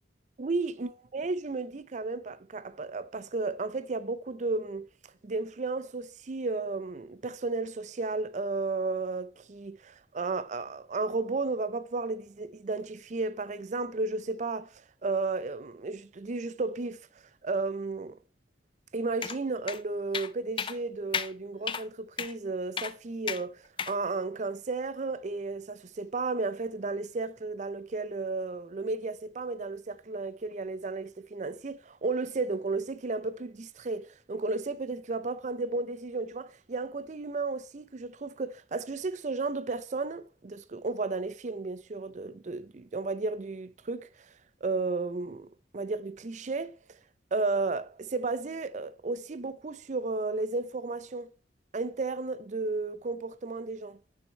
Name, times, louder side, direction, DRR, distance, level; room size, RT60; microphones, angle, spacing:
voice 1, 0.4-4.9 5.2-17.0 17.4-18.2 18.9-44.1 44.6-47.0 47.3-51.3 51.7-54.0, right 3 dB, 40° right, 0.5 m, -33 dB
sound 1, 19.2-19.4 19.7-19.8 20.1-20.3 20.6-20.8 21.1-21.3 21.7-21.8 22.2-22.3 22.8-22.9 23.3-23.4 23.8-24.0, left 7 dB, 30° left, 0.4 m, -32 dB
9.6 x 6.3 x 4.3 m
head